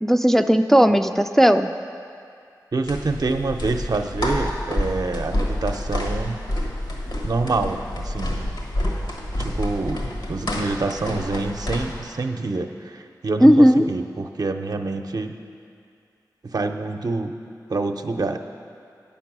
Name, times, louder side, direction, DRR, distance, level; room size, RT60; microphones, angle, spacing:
voice 1, 0.0-1.7 13.4-13.9, equal, 5° left, 6 dB, 0.3 m, -15 dB
voice 2, 2.7-6.4 7.2-8.4 9.4-15.3 16.4-17.3 17.7-18.4, right 3 dB, 60° right, 5 dB, 0.6 m, -26 dB
sound 1, 2.9-12.0, left 1 dB, 80° left, 1.4 m, -28 dB
9.5 x 7.0 x 6.0 m, 2.4 s
cardioid pair, 55°, 7 cm